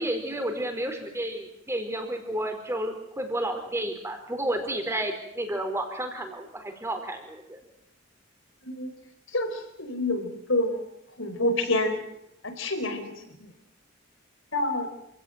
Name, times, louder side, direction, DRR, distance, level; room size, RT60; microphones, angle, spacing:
voice 1, 0.0-7.6, right 1 dB, 15° right, 6 dB, 4.5 m, -31 dB
voice 2, 9.3-10.8 11.2-12.0 12.4-13.1 14.5-14.9, left 1 dB, 65° left, 8 dB, 4.6 m, -27 dB
28.0 x 17.0 x 9.3 m, 0.80 s
head